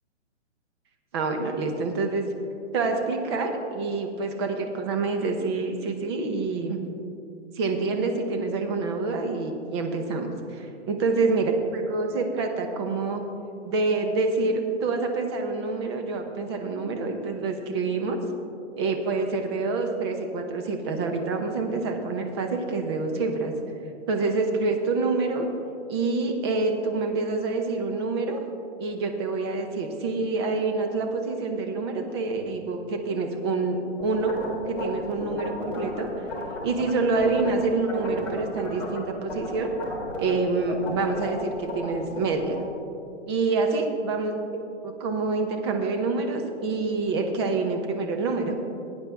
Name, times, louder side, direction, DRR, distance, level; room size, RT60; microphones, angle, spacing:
voice 1, 1.1-2.3 2.7-6.8 7.5-13.2 13.6-18.2 18.8-23.5 24.1-25.5 25.9-28.4 28.8-33.8 34.0-34.3 34.7-36.1 36.6-39.7 40.2-42.6 43.3-48.6, right 3 dB, 20° right, 4 dB, 0.8 m, -27 dB
sound 1, 34.0-37.6 37.9-39.0 39.3-42.7, left 2 dB, 5° left, 2.1 m, -34 dB
15.5 x 9.9 x 3.5 m, 2.5 s
hypercardioid pair, 160°, 37 cm